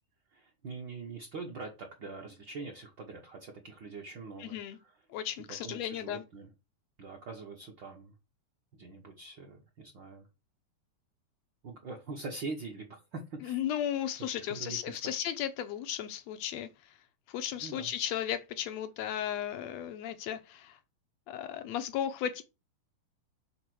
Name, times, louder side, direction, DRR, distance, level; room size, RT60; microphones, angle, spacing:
voice 1, 0.3-5.1 5.6-6.5 7.0-8.1 8.7-10.3 11.6-13.6 14.3-15.0 17.6-17.9, right 3 dB, 55° right, 1.3 m, -43 dB
voice 2, 4.4-4.8 5.1-6.2 13.5-16.7 17.3-20.8 21.3-22.4, left 10 dB, 75° left, 1.6 m, -35 dB
6.6 x 3.9 x 6.1 m
omnidirectional pair, 3.6 m